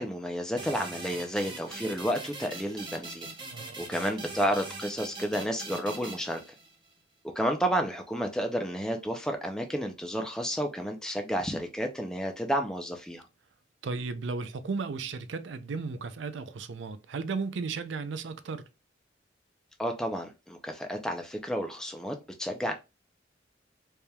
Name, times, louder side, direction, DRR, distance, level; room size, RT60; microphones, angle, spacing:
voice 1, 0.0-3.3 3.8-6.4 7.4-13.3 19.8-22.8, equal, 5° left, 0.5 m, -31 dB
sound 1, 0.6-6.9, right 3 dB, 25° right, 1.0 m, -42 dB
voice 2, 13.8-18.6, right 4 dB, 80° right, 0.5 m, -35 dB
4.3 x 3.4 x 2.2 m
head